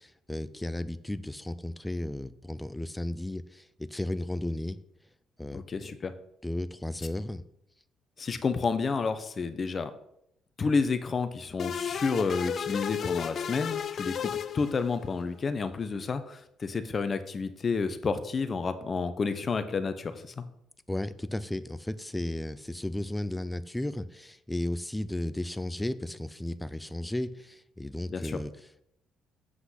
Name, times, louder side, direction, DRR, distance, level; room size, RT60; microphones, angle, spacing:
voice 1, 0.0-4.8 5.4-5.6 6.4-7.4 20.9-28.9, left 1 dB, 5° left, 13 dB, 0.5 m, -34 dB
voice 2, 5.5-6.1 8.2-9.9 10.6-20.4 28.1-28.4, left 4 dB, 35° left, 10 dB, 1.0 m, -30 dB
sound 1, 11.6-15.2, left 8 dB, 55° left, 0.5 m, -33 dB
8.0 x 5.9 x 5.8 m, 0.76 s
cardioid pair, 95°, 0 cm